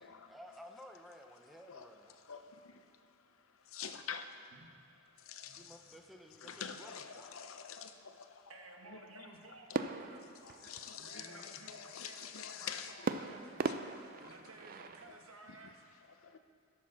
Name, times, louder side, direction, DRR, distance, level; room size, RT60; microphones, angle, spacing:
voice 1, 0.0-2.2 5.6-7.3 11.1-11.5, equal, ahead, 3 dB, 0.6 m, -55 dB
voice 2, 3.7-4.2 5.3-5.8 6.4-8.2 8.9-9.3 9.7-9.8 10.4-13.3 13.6-13.8 14.2-14.3 15.1-15.2 15.5-15.6 16.3-16.4, left 7 dB, 80° left, 8 dB, 0.7 m, -46 dB
voice 3, 8.5-10.3 10.9-13.7 14.2-15.8, right 3 dB, 85° right, 2 dB, 1.2 m, -55 dB
sound 1, 9.7-11.3 13.1-15.1, right 4 dB, 45° right, 0.4 m, -39 dB
13.0 x 6.4 x 5.9 m, 2.3 s
head